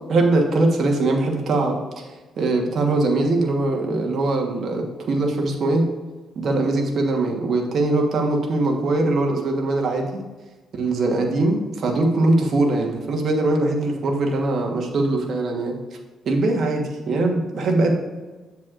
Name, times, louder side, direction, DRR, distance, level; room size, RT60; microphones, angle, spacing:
voice 1, 0.1-2.1 2.4-5.8 6.3-10.2 10.7-15.8 16.2-17.9, right 2 dB, 60° right, 1 dB, 1.3 m, -21 dB
7.5 x 7.4 x 2.5 m, 1.2 s
cardioid pair, 90°, 0 cm